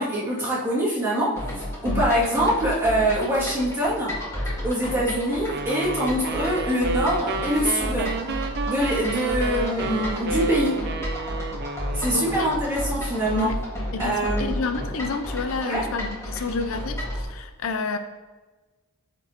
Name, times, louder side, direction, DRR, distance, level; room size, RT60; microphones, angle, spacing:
voice 1, 0.0-4.2 4.6-8.2 8.7-10.8 11.9-13.5 14.0-14.6 15.6-15.9, equal, 10° right, -9 dB, 2.3 m, -24 dB
sound 1, 1.4-17.2, equal, 15° left, 1.7 m, -32 dB
sound 2, 5.5-12.7, right 4 dB, 45° right, 0.5 m, -31 dB
voice 2, 12.1-12.5 13.3-13.5 13.9-18.0, left 4 dB, 65° left, 9 dB, 0.5 m, -30 dB
13.0 x 4.4 x 2.9 m, 1.3 s
head